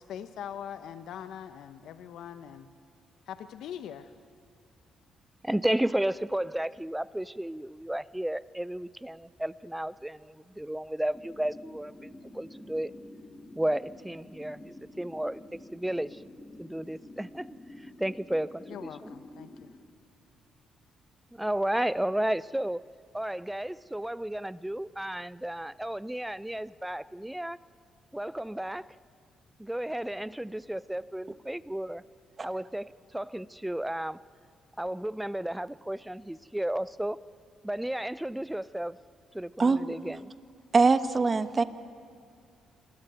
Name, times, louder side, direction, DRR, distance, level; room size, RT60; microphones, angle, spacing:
voice 1, 0.0-2.7 3.3-4.1 18.7-19.7, left 9 dB, 75° left, 11 dB, 1.0 m, -42 dB
voice 2, 5.4-12.9 13.5-16.2 16.6-19.1 21.3-22.8 23.1-27.6 28.1-29.0 29.6-32.0 32.4-34.2 34.8-37.2 37.6-39.0 39.3-40.3, right 1 dB, 5° right, 19 dB, 0.6 m, -33 dB
sound 1, 11.1-19.8, left 1 dB, 15° left, 3.9 m, -49 dB
voice 3, 40.7-41.6, right 4 dB, 30° right, 12 dB, 1.4 m, -22 dB
27.0 x 22.5 x 9.2 m, 2.4 s
cardioid pair, 90°, 0 cm